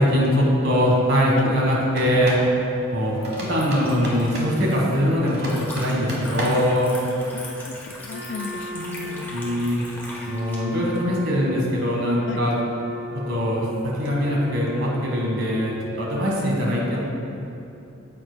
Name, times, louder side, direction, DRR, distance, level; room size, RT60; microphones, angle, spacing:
voice 1, 0.0-2.4 2.9-7.0 9.3-9.8 10.3-12.6 13.1-17.0, equal, 70° right, -3 dB, 1.5 m, -22 dB
sound 1, 1.9-2.5 3.2-4.6 5.3-6.7, equal, 50° right, 1.3 m, -31 dB
Liquid, 2.2-10.6, left 1 dB, 10° left, 1.0 m, -40 dB
voice 2, 7.3-9.4 12.3-12.4, left 5 dB, 60° left, 8 dB, 0.3 m, -35 dB
Wind instrument woodwind instrument, 8.1-16.0, right 2 dB, 15° right, 0.7 m, -37 dB
9.4 x 7.6 x 2.2 m, 2.7 s
head